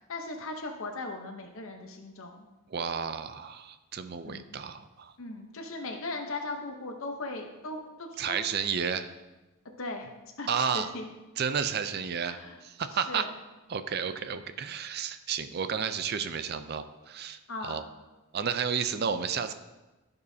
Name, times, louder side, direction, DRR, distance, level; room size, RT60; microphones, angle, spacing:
voice 1, 0.0-2.4 4.2-4.5 5.2-8.7 9.8-10.1 10.4-11.0 12.1-12.6 12.9-13.3 17.5-17.8, left 2 dB, 70° left, 3 dB, 0.9 m, -38 dB
voice 2, 2.7-5.1 8.2-9.1 10.5-10.9 11.4-13.3 13.7-17.8 18.3-19.5, right 6 dB, 45° right, 11 dB, 0.4 m, -32 dB
15.0 x 5.4 x 2.8 m, 1.1 s
head